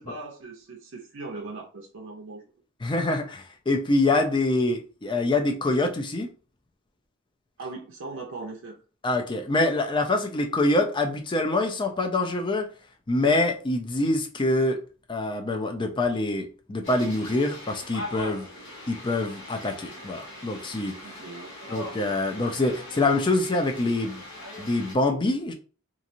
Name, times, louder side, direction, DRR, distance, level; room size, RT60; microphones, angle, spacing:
voice 1, 0.0-2.5 7.6-8.8 21.0-21.5, right 3 dB, 65° right, 0.6 m, -39 dB
voice 2, 2.8-6.3 9.0-12.7 13.1-14.8 15.1-18.5 18.9-21.0 21.7-24.2 24.6-25.5, left 2 dB, 25° left, 0.5 m, -25 dB
sound 1, 16.8-24.9, left 1 dB, 65° left, 1.3 m, -41 dB
3.1 x 2.5 x 2.6 m
head